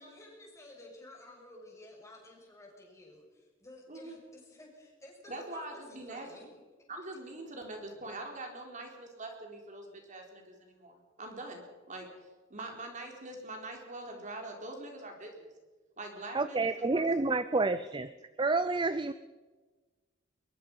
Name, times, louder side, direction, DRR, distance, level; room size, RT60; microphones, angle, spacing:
voice 1, 0.0-6.5, left 1 dB, 15° left, -1 dB, 7.0 m, -52 dB
voice 2, 5.3-6.3 6.9-12.1 12.5-15.5 16.0-17.0, right 2 dB, 40° right, 2 dB, 4.3 m, -43 dB
voice 3, 16.3-18.1 18.4-19.1, right 3 dB, 25° right, 13 dB, 0.6 m, -29 dB
22.5 x 22.0 x 5.6 m, 1.3 s
head